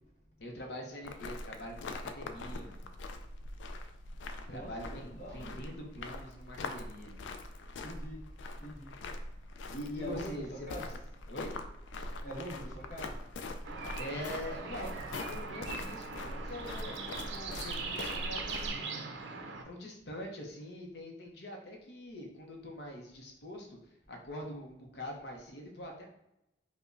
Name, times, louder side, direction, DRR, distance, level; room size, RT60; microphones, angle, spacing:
voice 1, 0.4-2.9 4.5-7.2 9.7-10.7 11.3-11.5 14.0-19.1 19.6-26.0, left 1 dB, 65° left, 1 dB, 0.7 m, -44 dB
sound 1, 1.0-18.7, left 2 dB, 85° left, 0.3 m, -43 dB
voice 2, 4.5-5.6 7.8-8.3 8.6-8.9 9.9-10.9 12.2-13.2, equal, 40° left, -3 dB, 1.0 m, -43 dB
sound 2, 13.6-19.6, right 4 dB, 75° right, 0.4 m, -41 dB
4.8 x 2.2 x 2.5 m, 0.83 s
head